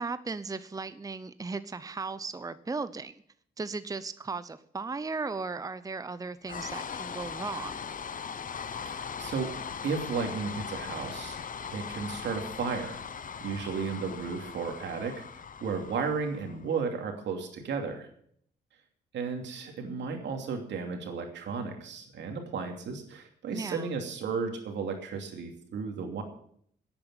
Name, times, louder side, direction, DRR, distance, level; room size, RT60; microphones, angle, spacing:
voice 1, 0.0-3.2 3.6-7.9 13.9-14.0 23.5-23.9, right 4 dB, 20° right, 14 dB, 0.7 m, -36 dB
sound 1, 6.4-16.7, left 6 dB, 50° left, 0.9 m, -39 dB
voice 2, 8.8-9.5 9.8-11.4 11.7-13.0 13.4-18.1 19.1-26.2, right 5 dB, 80° right, 4 dB, 2.7 m, -34 dB
10.5 x 8.9 x 9.0 m, 0.65 s
cardioid pair, 75°, 18 cm